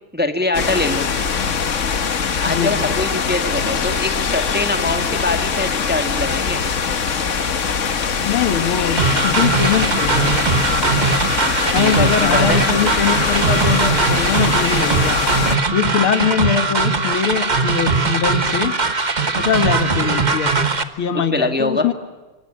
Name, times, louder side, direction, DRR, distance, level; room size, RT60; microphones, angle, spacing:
voice 1, 0.1-1.0 2.4-6.6 11.7-12.6 21.3-21.9, left 2 dB, 5° right, 6 dB, 1.6 m, -23 dB
sound 1, 0.5-15.6, left 6 dB, 40° left, 1.3 m, -22 dB
voice 2, 2.5-2.8 3.5-3.6 8.2-10.5 11.7-15.2 15.7-18.8 19.4-20.7 21.0-21.9, left 8 dB, 75° left, 9 dB, 2.3 m, -22 dB
sound 2, 9.0-20.8, right 3 dB, 30° right, 1.0 m, -19 dB
26.0 x 25.5 x 8.6 m, 1.2 s
omnidirectional pair, 2.4 m